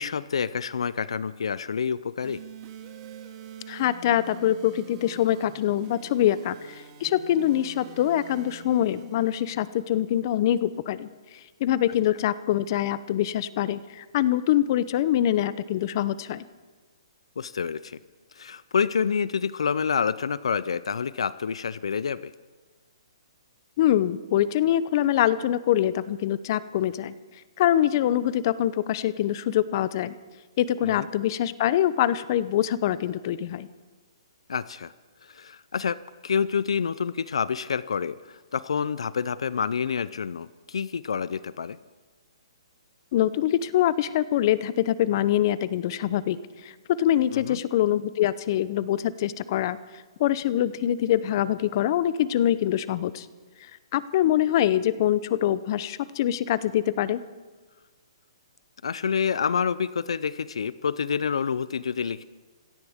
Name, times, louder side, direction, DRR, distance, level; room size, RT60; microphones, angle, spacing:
voice 1, 0.0-2.4 17.4-18.0 18.3-22.3 30.8-31.1 34.5-34.9 35.2-41.8 47.3-47.6 58.8-62.2, left 6 dB, 80° left, 18 dB, 0.5 m, -28 dB
sound 1, 2.2-10.2, right 7 dB, 30° right, 2.1 m, -46 dB
voice 2, 3.7-11.1 11.6-16.4 23.8-27.1 27.6-30.1 30.6-33.7 43.1-49.8 50.2-53.3 53.6-57.2, left 12 dB, 40° left, 16 dB, 0.7 m, -24 dB
26.5 x 14.5 x 3.6 m, 1.4 s
hypercardioid pair, 150°, 3 cm